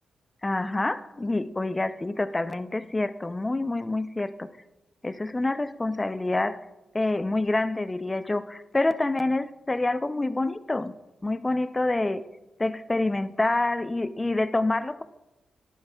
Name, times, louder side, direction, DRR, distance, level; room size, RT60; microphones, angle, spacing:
voice 1, 0.4-4.5 5.0-6.7 6.9-10.9 11.2-12.2 12.6-15.0, left 2 dB, 25° left, 14 dB, 0.5 m, -27 dB
12.0 x 10.0 x 2.3 m, 1.0 s
supercardioid pair, 45°, 0 cm